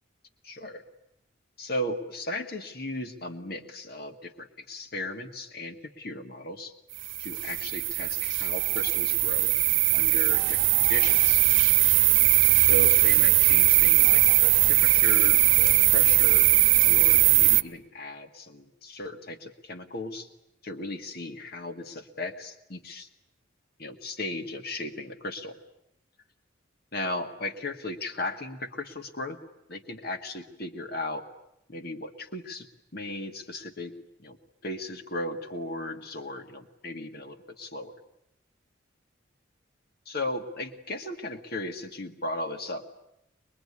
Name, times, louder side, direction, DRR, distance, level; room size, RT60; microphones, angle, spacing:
voice 1, 0.4-0.8 1.6-6.7 7.2-9.5 9.9-11.4 12.6-16.5 16.8-20.3 20.6-23.1 23.8-25.6 26.9-29.4 29.7-31.2 31.7-32.7 32.9-33.9 34.2-34.4 34.6-37.9 40.1-42.9, left 1 dB, 50° left, 6 dB, 1.9 m, -36 dB
sound 1, 7.0-17.6, right 17 dB, 75° right, 0.9 m, -20 dB
23.5 x 22.5 x 9.8 m, 0.82 s
head